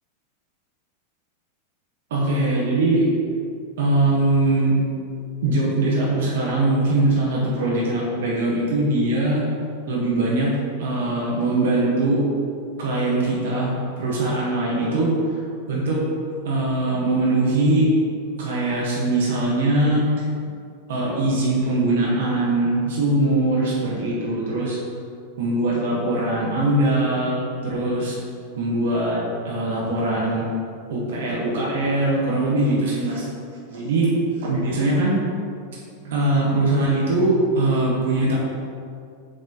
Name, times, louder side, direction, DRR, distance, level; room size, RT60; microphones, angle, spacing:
voice 1, 2.1-3.1 3.8-4.8 5.4-9.4 9.9-10.5 10.8-12.3 12.8-15.1 15.7-16.0 16.4-17.9 18.4-20.1 20.9-24.8 25.4-28.1 28.6-30.4 30.9-33.2 33.7-34.1 34.4-35.2 36.0-38.4, right 2 dB, 60° right, -5 dB, 1.6 m, -21 dB
7.9 x 4.1 x 4.1 m, 2.3 s
figure-of-eight pair, 90°, 0 cm